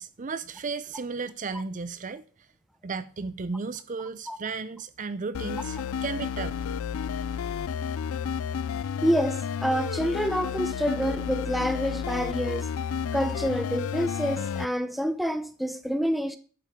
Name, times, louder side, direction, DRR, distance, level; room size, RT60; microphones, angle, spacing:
voice 1, 0.0-2.2 2.8-6.6, right 4 dB, 35° right, 0.5 m, -34 dB
sound 1, 5.3-14.7, left 7 dB, 70° left, 0.4 m, -31 dB
voice 2, 9.0-12.7 13.1-16.4, equal, ahead, 0.7 m, -27 dB
11.0 x 8.5 x 3.6 m
head